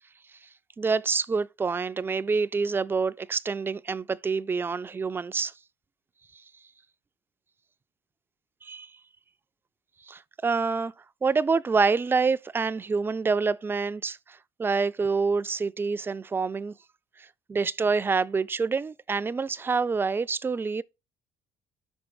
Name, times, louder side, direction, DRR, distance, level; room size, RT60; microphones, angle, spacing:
voice 1, 0.8-5.5 8.6-8.9 10.1-10.9 11.2-14.2 14.6-16.7 17.5-20.8, right 4 dB, 20° right, 0.4 m, -27 dB
6.3 x 3.3 x 4.7 m
cardioid pair, 100°, 11 cm